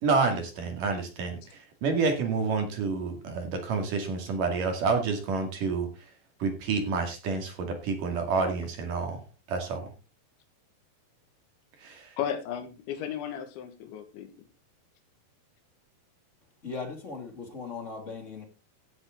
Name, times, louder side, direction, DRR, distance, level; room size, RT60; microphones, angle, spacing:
voice 1, 0.0-5.9 6.4-9.2 9.5-9.9 11.8-12.1, right 4 dB, 55° right, 3.5 m, -29 dB
voice 2, 12.2-14.5, left 9 dB, 90° left, 4.0 m, -35 dB
voice 3, 16.6-18.4, left 4 dB, 25° left, 1.9 m, -38 dB
16.5 x 7.8 x 3.8 m
omnidirectional pair, 5.1 m